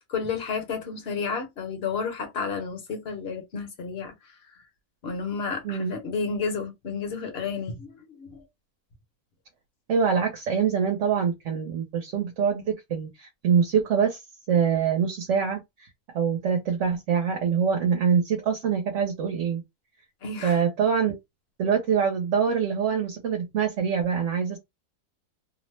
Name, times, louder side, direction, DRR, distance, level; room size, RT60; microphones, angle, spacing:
voice 1, 0.1-4.1 5.0-8.4 20.2-20.6, left 5 dB, 50° left, 0.9 m, -31 dB
voice 2, 9.9-14.2 14.5-15.9 16.1-19.6 20.4-21.2 21.6-24.6, right 7 dB, 60° right, 1.0 m, -24 dB
2.8 x 2.0 x 3.1 m
omnidirectional pair, 1.7 m